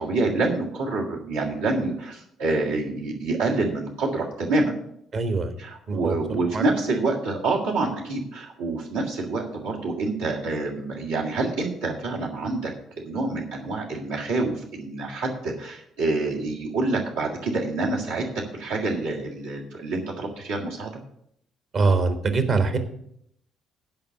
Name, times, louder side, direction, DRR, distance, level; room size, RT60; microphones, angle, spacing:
voice 1, 0.0-4.8 5.6-12.7 13.0-18.2 18.5-21.0, right 3 dB, 70° right, -5 dB, 1.8 m, -27 dB
voice 2, 5.1-5.5 5.9-6.6 21.7-22.8, right 4 dB, 45° right, 8 dB, 1.3 m, -23 dB
9.9 x 5.3 x 8.2 m, 0.73 s
figure-of-eight pair, 45°, 0 cm